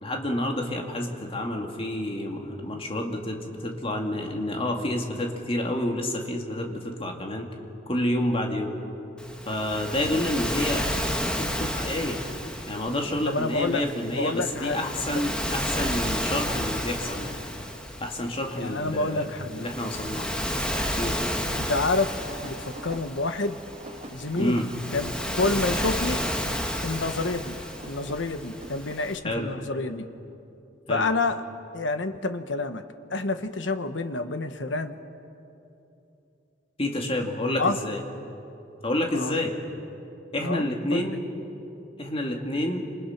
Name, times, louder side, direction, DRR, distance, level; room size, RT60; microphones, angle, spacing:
voice 1, 0.0-7.5 7.9-8.7 9.5-10.9 11.2-12.2 12.7-17.3 18.0-19.2 19.6-20.4 21.0-21.2 24.3-24.7 29.2-29.5 30.9-31.1 36.8-38.0 38.8-39.5 40.3-41.3 42.0-42.9, left 1 dB, 30° left, 2 dB, 2.5 m, -29 dB
Waves surf, 9.2-29.2, equal, 5° left, 1.8 m, -32 dB
voice 2, 13.3-15.1 18.5-19.7 21.5-23.6 24.1-24.7 24.9-26.3 26.8-27.5 27.8-30.1 30.9-31.4 31.7-32.8 33.1-35.0 37.6-37.8 39.1-39.4 40.4-41.2, left 3 dB, 85° left, 9 dB, 1.2 m, -28 dB
sound 1, 21.7-29.4, right 1 dB, 35° right, 2.0 m, -45 dB
29.5 x 27.5 x 6.0 m, 2.9 s
head